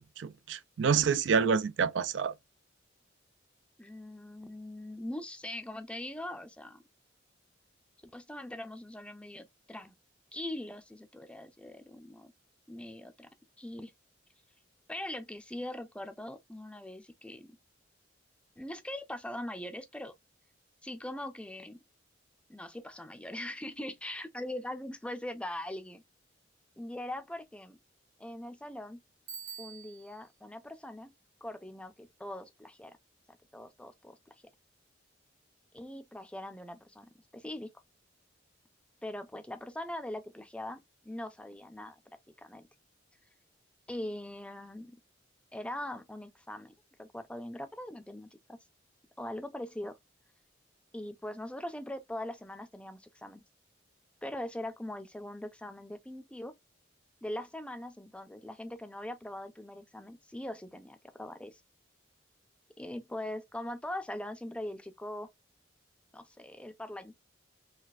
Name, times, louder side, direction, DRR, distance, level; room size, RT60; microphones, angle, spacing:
voice 1, 0.2-2.3, right 6 dB, 70° right, 0.4 m, -27 dB
voice 2, 3.8-6.8 8.1-9.9 10.3-12.3 12.7-13.3 13.6-13.9 14.9-17.5 18.6-20.1 20.8-21.8 22.5-26.0 26.8-27.8 28.2-29.0 29.6-31.1 31.4-33.0 33.5-34.2 35.7-37.7 39.0-40.8 41.0-42.0 42.4-42.6 43.9-45.0 45.5-46.7 47.0-48.6 49.2-50.0 50.9-53.4 54.2-56.5 57.2-61.6 62.8-65.3 66.1-67.1, left 1 dB, 5° left, 0.5 m, -41 dB
Bicycle bell, 29.3-30.2, right 7 dB, 85° right, 1.7 m, -45 dB
4.0 x 2.5 x 2.4 m
head